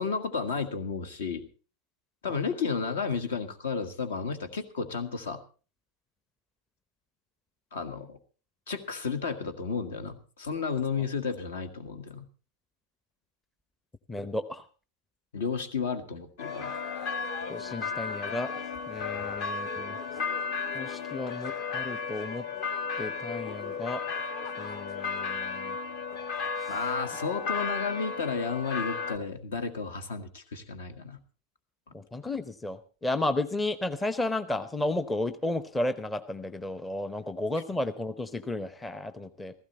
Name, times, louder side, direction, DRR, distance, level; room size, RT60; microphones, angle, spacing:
voice 1, 0.0-1.4 2.2-5.4 7.7-8.2 8.7-12.3 15.3-16.7 26.7-31.2, left 5 dB, 60° left, 10 dB, 1.7 m, -32 dB
voice 2, 14.1-14.6 17.5-20.0 20.7-22.5 23.0-24.0 24.6-25.8 26.6-26.7 31.9-39.5, left 2 dB, 10° left, 12 dB, 0.8 m, -33 dB
sound 1, 16.4-29.2, left 5 dB, 40° left, 1.5 m, -34 dB
16.0 x 14.5 x 4.2 m, 0.37 s
figure-of-eight pair, 90°, 0 cm